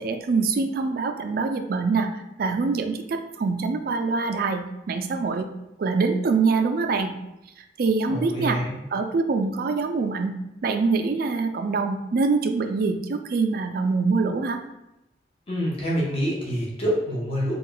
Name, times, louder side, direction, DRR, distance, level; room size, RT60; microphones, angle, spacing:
voice 1, 0.0-5.5 5.8-7.1 7.8-8.6 8.9-10.3 10.6-14.6, right 4 dB, 55° right, 6 dB, 0.3 m, -24 dB
voice 2, 8.1-8.7 15.5-17.5, equal, 35° left, -5 dB, 0.8 m, -26 dB
3.6 x 2.3 x 3.8 m, 0.89 s
head